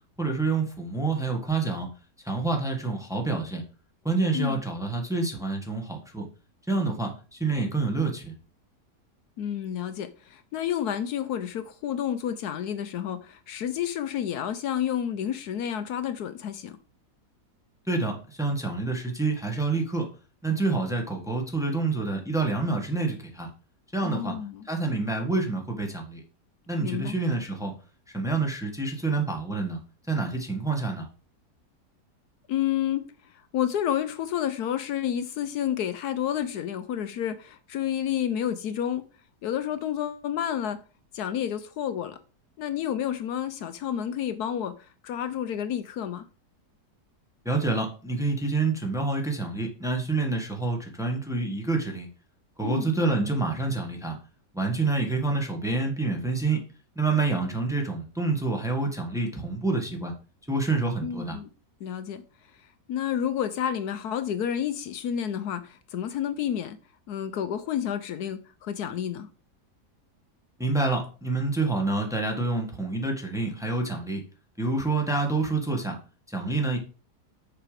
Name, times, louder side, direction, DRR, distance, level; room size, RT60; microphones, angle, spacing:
voice 1, 0.2-1.9 2.2-3.6 4.0-6.3 6.7-8.3 17.9-20.1 20.4-23.5 23.9-24.4 24.6-26.2 26.7-27.7 28.1-29.8 30.1-31.1 47.4-52.1 52.6-54.2 54.5-56.6 56.9-60.1 60.5-61.4 70.6-74.2 74.6-76.0 76.3-76.8, right 3 dB, ahead, 1.4 m, -27 dB
voice 2, 9.4-16.8 24.0-24.7 26.8-27.1 32.5-33.1 33.5-39.0 39.4-40.8 41.1-42.2 42.6-46.3 52.6-52.9 61.0-61.5 61.8-62.2 62.9-66.8 67.1-69.3, left 10 dB, 75° left, 1.1 m, -30 dB
6.9 x 5.8 x 5.0 m
omnidirectional pair, 1.8 m